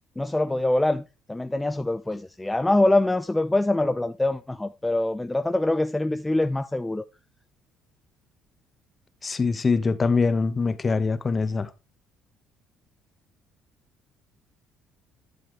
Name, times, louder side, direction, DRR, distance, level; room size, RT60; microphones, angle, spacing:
voice 1, 0.2-7.0, left 2 dB, 10° left, 0.5 m, -24 dB
voice 2, 9.2-11.7, left 4 dB, 30° left, 1.0 m, -23 dB
10.5 x 7.2 x 3.3 m
supercardioid pair, 75°, 0 cm